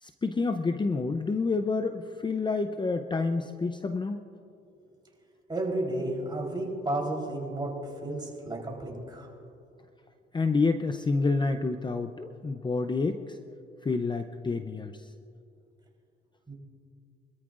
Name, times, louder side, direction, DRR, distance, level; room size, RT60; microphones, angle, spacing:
voice 1, 0.0-4.2 10.3-13.4 13.8-15.1, left 3 dB, 25° left, 8 dB, 0.6 m, -28 dB
voice 2, 5.5-7.7 8.0-9.3 16.5-16.6, right 1 dB, 20° right, -1 dB, 3.8 m, -32 dB
25.5 x 13.5 x 2.5 m, 2.5 s
cardioid pair, 90°, 20 cm